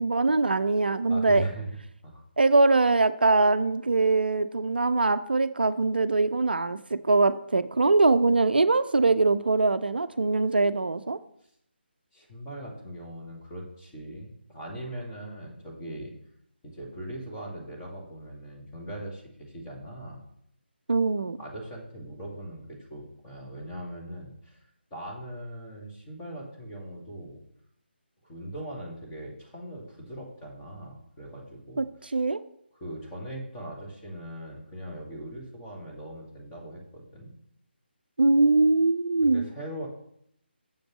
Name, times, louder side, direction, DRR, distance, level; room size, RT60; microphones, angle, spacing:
voice 1, 0.0-1.5 2.4-11.2 20.9-21.4 31.8-31.9 32.1-32.4 38.2-39.4, right 3 dB, 60° right, 12 dB, 0.5 m, -22 dB
voice 2, 1.1-1.7 2.0-2.2 12.1-16.1 16.6-20.2 21.4-24.6 24.9-27.4 28.2-31.8 32.7-37.3 39.2-39.9, right 1 dB, 15° left, -3 dB, 2.0 m, -40 dB
7.4 x 5.2 x 7.2 m, 0.72 s
figure-of-eight pair, 150°, 6 cm